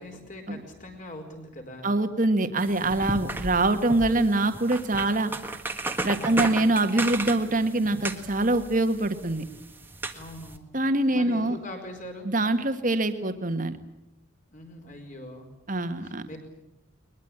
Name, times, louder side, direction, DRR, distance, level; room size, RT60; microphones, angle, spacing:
voice 1, 0.0-1.9 6.2-6.5 10.1-10.6 11.1-12.3 14.5-15.5 16.0-16.4, left 1 dB, 40° left, 4 dB, 4.7 m, -42 dB
voice 2, 1.8-5.3 6.0-9.5 10.7-11.6 12.2-13.8 15.7-16.3, right 2 dB, 40° right, 8 dB, 1.7 m, -24 dB
sound 1, 2.6-10.6, right 2 dB, 10° right, 1.6 m, -35 dB
22.0 x 21.5 x 8.8 m, 0.89 s
head